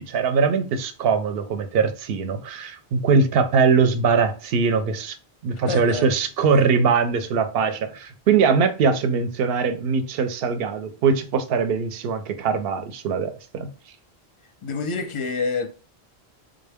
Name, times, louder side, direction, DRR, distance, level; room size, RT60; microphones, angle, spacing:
voice 1, 0.0-5.2 5.4-13.7, right 5 dB, 70° right, 0.8 m, -21 dB
voice 2, 5.7-6.1 14.6-15.7, left 4 dB, 40° left, 0.5 m, -27 dB
3.7 x 2.1 x 3.4 m
omnidirectional pair, 1.0 m